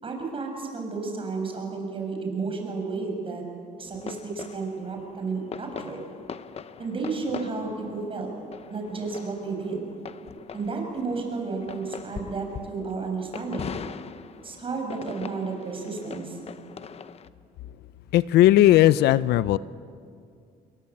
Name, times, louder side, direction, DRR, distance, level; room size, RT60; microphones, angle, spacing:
voice 1, 0.0-3.4 3.8-6.0 6.8-8.3 8.7-9.8 10.5-13.8 14.4-16.4, right 4 dB, 30° right, 2 dB, 7.2 m, -32 dB
sound 1, 3.9-17.3, left 7 dB, 35° left, 0.9 m, -41 dB
voice 2, 18.1-19.6, left 14 dB, 75° left, 17 dB, 0.6 m, -17 dB
29.5 x 22.0 x 8.6 m, 2.3 s
cardioid pair, 110°, 17 cm